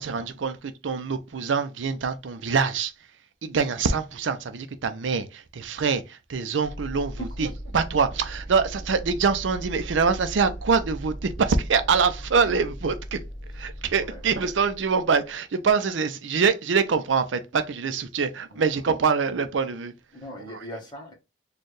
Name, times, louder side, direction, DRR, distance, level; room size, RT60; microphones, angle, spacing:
voice 1, 0.0-2.9 3.4-7.5 7.7-13.2 13.5-19.9, right 5 dB, 90° right, 0.5 m, -24 dB
sound 1, 6.6-15.3, right 1 dB, 55° right, 1.0 m, -38 dB
voice 2, 7.2-7.5 13.9-14.2 18.5-18.7 20.1-21.1, equal, 25° left, 1.1 m, -40 dB
4.3 x 2.3 x 3.2 m
head